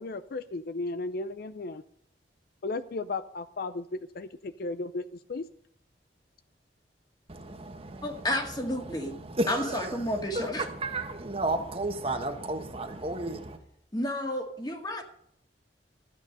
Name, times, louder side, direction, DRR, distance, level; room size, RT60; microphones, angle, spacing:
voice 1, 0.0-1.8 2.6-5.5, left 3 dB, 55° left, 0.5 m, -35 dB
voice 2, 7.3-13.6, right 2 dB, 35° right, 1.3 m, -33 dB
voice 3, 8.0-9.1 9.5-10.6 13.9-15.0, left 1 dB, 25° left, 2.0 m, -31 dB
13.5 x 8.4 x 5.3 m
head